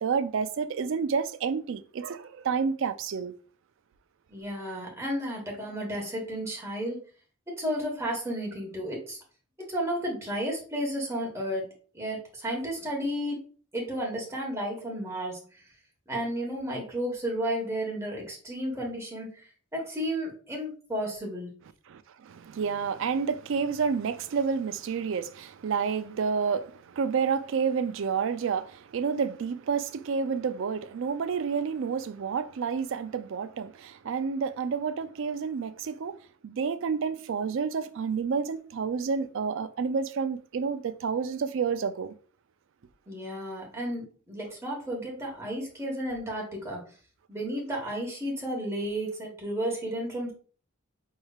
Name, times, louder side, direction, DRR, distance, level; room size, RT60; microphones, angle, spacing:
voice 1, 0.0-3.4 21.9-36.2 36.4-42.1, right 6 dB, 60° right, 0.4 m, -29 dB
voice 2, 4.3-7.0 7.5-9.2 9.7-11.6 11.9-13.4 13.7-15.6 16.1-21.5 43.1-46.8 47.3-50.3, equal, 15° right, 1.2 m, -33 dB
5.4 x 3.1 x 2.4 m
head